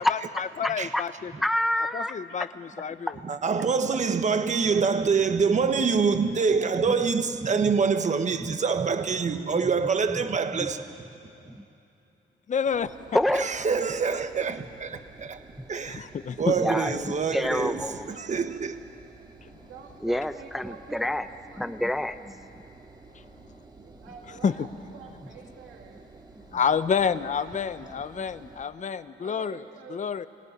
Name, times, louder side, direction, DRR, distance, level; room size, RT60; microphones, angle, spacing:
voice 1, 0.0-1.0 1.4-2.5 2.8-3.3 5.6-5.7 7.0-7.1 7.5-7.8 8.4-8.6 9.4-9.6 10.1-10.2 10.6-10.7 11.5-11.6 13.1-13.5 15.6-15.7 16.5-18.1 20.0-21.3 21.6-22.5 28.2-28.3, left 1 dB, ahead, 0.6 m, -29 dB
voice 2, 0.6-1.3 1.9-3.1 12.5-12.9 15.9-16.5 24.4-24.5 26.5-29.6 29.9-30.3, left 7 dB, 40° left, 0.8 m, -28 dB
voice 3, 3.3-10.9 13.3-16.1 16.4-17.8 18.2-18.8, right 5 dB, 35° right, 1.4 m, -25 dB
voice 4, 4.7-6.0 6.5-6.7 12.6-13.2 13.6-13.7 16.5-17.7 18.1-18.3 19.7-21.8 23.8-26.2 27.2-28.0 29.2-30.1, right 6 dB, 85° right, 2.2 m, -48 dB
Engine, 12.7-28.6, right 3 dB, 20° right, 2.0 m, -51 dB
24.0 x 17.0 x 9.8 m
cardioid pair, 90°, 20 cm